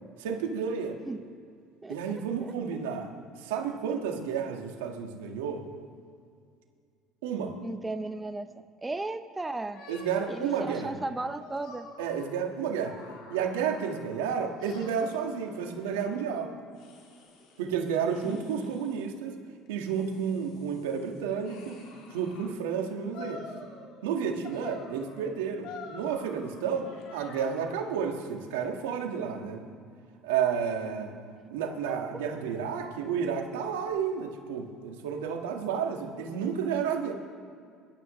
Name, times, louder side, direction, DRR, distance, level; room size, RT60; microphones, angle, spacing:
voice 1, 0.2-1.0 1.9-3.1 3.4-5.6 7.2-7.6 9.9-10.9 12.0-13.0 13.3-16.5 17.6-19.4 19.7-21.8 22.1-23.4 24.0-29.6 30.2-31.1 31.5-37.1, right 7 dB, 90° right, 3 dB, 1.5 m, -31 dB
voice 2, 1.8-2.5 7.6-8.5 8.8-9.8 10.3-11.9 18.2-18.9 31.9-32.0, right 2 dB, 15° right, 9 dB, 0.7 m, -36 dB
sound 1, 9.7-14.2 14.6-16.1 16.7-17.7 18.1-19.1 19.7-22.5 23.1-24.1 24.4-27.9, left 4 dB, 70° left, 2.7 m, -48 dB
23.5 x 12.0 x 3.1 m, 2.2 s
supercardioid pair, 85°, 0 cm